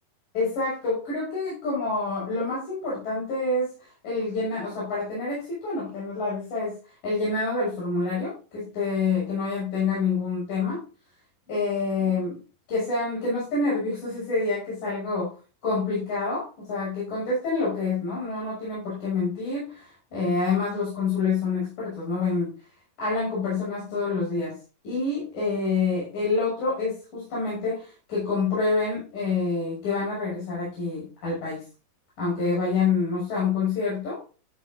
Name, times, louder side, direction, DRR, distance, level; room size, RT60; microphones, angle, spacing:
voice 1, 0.3-6.8 7.0-10.8 11.5-12.4 12.7-15.3 15.6-22.5 23.0-24.6 24.8-31.7 32.2-34.2, left 4 dB, 70° left, -7 dB, 8.1 m, -27 dB
15.0 x 9.5 x 2.6 m, 0.35 s
omnidirectional pair, 4.0 m